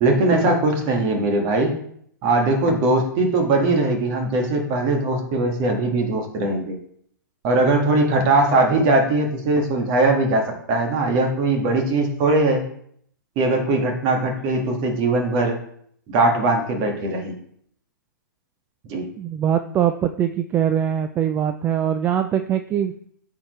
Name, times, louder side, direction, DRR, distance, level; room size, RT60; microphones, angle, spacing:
voice 1, 0.0-1.8 2.2-6.8 7.4-12.6 13.4-15.6 16.1-17.4 18.9-19.1, right 2 dB, 35° right, 3 dB, 1.8 m, -20 dB
voice 2, 19.2-22.9, right 9 dB, 20° right, 8 dB, 0.3 m, -22 dB
8.8 x 4.5 x 3.2 m, 0.67 s
hypercardioid pair, 130°, 11 cm